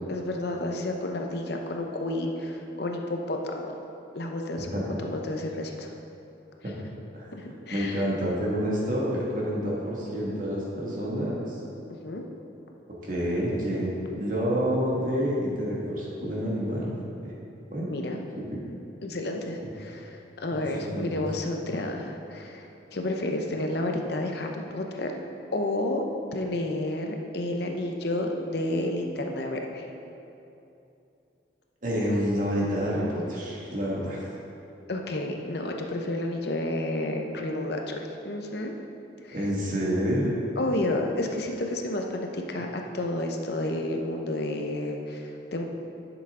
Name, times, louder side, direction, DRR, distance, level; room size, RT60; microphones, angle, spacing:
voice 1, 0.1-3.8 4.1-4.7 5.1-5.9 7.4-8.0 12.0-12.2 17.9-18.2 19.0-25.1 25.5-26.0 26.3-29.9 34.9-38.7 39.2-39.4 40.6-45.6, left 1 dB, 55° left, 2 dB, 0.7 m, -31 dB
voice 2, 7.7-11.6 13.0-16.9 17.7-17.9 18.3-18.6 20.5-21.2 31.8-34.2 39.3-40.3, equal, 45° right, -5 dB, 1.8 m, -28 dB
11.0 x 6.9 x 3.7 m, 2.8 s
head